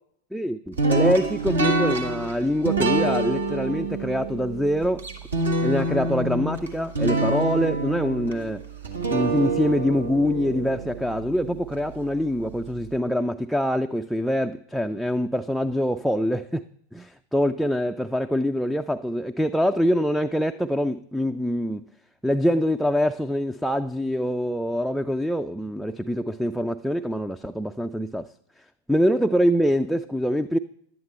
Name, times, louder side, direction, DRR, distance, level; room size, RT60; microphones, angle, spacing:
voice 1, 0.3-5.1 5.6-8.6 9.1-16.6 16.9-21.9 22.2-28.3 28.9-30.6, equal, ahead, 0.3 m, -24 dB
sound 1, 0.8-11.8, right 3 dB, 70° right, 1.4 m, -26 dB
11.0 x 9.4 x 4.4 m
figure-of-eight pair, 90°, 0 cm